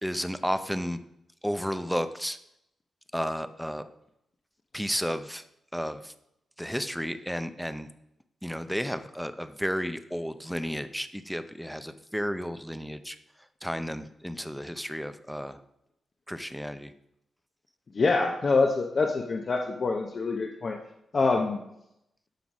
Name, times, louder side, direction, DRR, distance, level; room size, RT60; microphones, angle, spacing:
voice 1, 0.0-1.0 1.4-2.4 3.1-3.9 4.7-5.4 5.7-6.1 6.6-7.9 8.4-13.2 13.6-15.6 16.3-16.9, equal, ahead, 11 dB, 0.6 m, -32 dB
voice 2, 17.9-20.8 21.1-21.6, left 3 dB, 45° left, 2 dB, 0.8 m, -25 dB
12.0 x 3.9 x 6.2 m, 0.82 s
cardioid pair, 105°, 0 cm